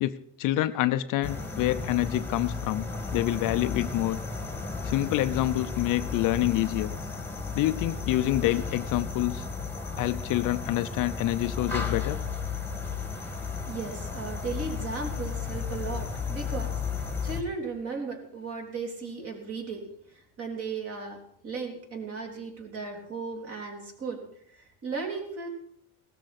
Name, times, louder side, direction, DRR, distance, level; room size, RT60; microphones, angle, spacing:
voice 1, 0.4-2.9 3.1-4.2 4.8-6.9 7.5-9.5 10.0-12.2, left 15 dB, 50° left, 11 dB, 0.6 m, -27 dB
sound 1, 1.2-17.4, left 5 dB, 5° left, 1.8 m, -34 dB
voice 2, 13.6-24.2 24.5-25.5, right 4 dB, 35° right, 2 dB, 3.4 m, -36 dB
17.0 x 13.0 x 4.2 m, 0.67 s
cardioid pair, 135°, 40 cm